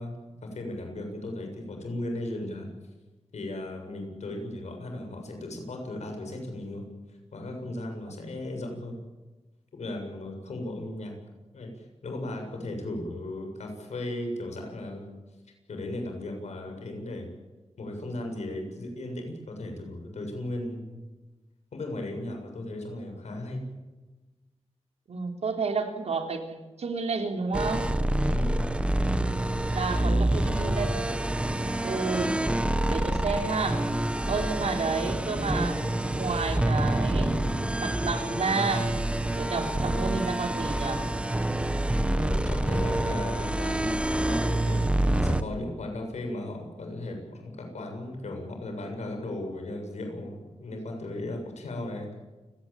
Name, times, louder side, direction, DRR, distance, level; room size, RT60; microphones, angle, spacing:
voice 1, 0.0-2.7 3.3-6.9 7.3-9.0 9.7-11.1 11.5-15.1 15.7-17.3 17.8-21.0 21.7-23.6 28.3-28.5 30.0-30.6 32.2-32.4 42.0-52.1, left 1 dB, 90° left, 3 dB, 7.3 m, -36 dB
voice 2, 25.1-27.9 29.7-31.2 31.8-32.4 32.9-33.9 34.3-35.8 36.1-37.4 37.8-38.9 39.4-41.1, right 4 dB, 70° right, 5 dB, 3.5 m, -31 dB
sound 1, 27.5-45.4, right 1 dB, 10° right, 1.3 m, -27 dB
30.0 x 18.0 x 8.8 m, 1.2 s
wide cardioid pair, 130°, 11 cm